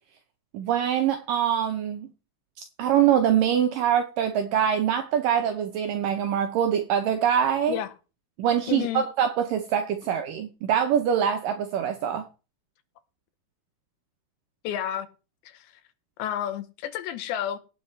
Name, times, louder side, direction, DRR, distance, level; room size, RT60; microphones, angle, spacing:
voice 1, 0.5-2.1 2.6-7.8 8.4-12.3, right 9 dB, 85° right, 1.9 m, -24 dB
voice 2, 8.7-9.0 14.6-15.1 15.5-15.7 16.2-17.6, left 11 dB, 85° left, 3.2 m, -30 dB
17.5 x 7.7 x 3.2 m
omnidirectional pair, 5.0 m